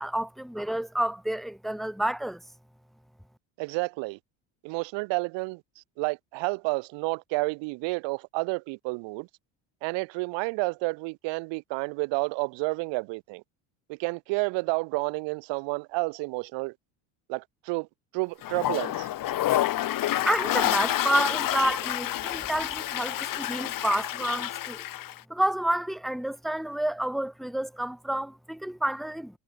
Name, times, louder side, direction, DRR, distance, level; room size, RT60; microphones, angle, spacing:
voice 1, 0.0-2.4 20.2-24.8 25.3-29.4, right 1 dB, ahead, 1.1 m, -29 dB
voice 2, 3.6-4.2 4.6-5.6 6.0-9.3 9.8-13.4 13.9-16.7 17.3-17.9 18.1-19.1, right 27 dB, 75° right, 1.5 m, -30 dB
Toilet flush, 18.4-25.2, left 13 dB, 50° left, 1.9 m, -29 dB
cardioid pair, 115°, 44 cm